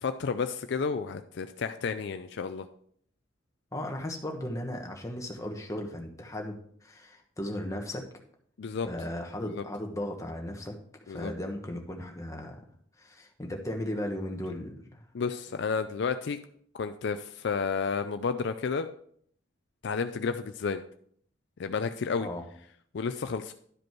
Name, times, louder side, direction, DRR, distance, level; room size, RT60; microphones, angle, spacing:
voice 1, 0.0-2.7 8.6-8.9 9.4-9.6 11.1-11.3 15.1-16.4 16.7-18.9 19.8-20.8 21.6-22.3 22.9-23.5, left 5 dB, 60° left, 9 dB, 0.4 m, -31 dB
voice 2, 3.7-8.1 8.8-10.8 11.1-12.6 13.0-15.0 22.2-22.4, left 1 dB, 15° left, 2 dB, 1.1 m, -36 dB
11.0 x 5.1 x 4.5 m, 0.64 s
head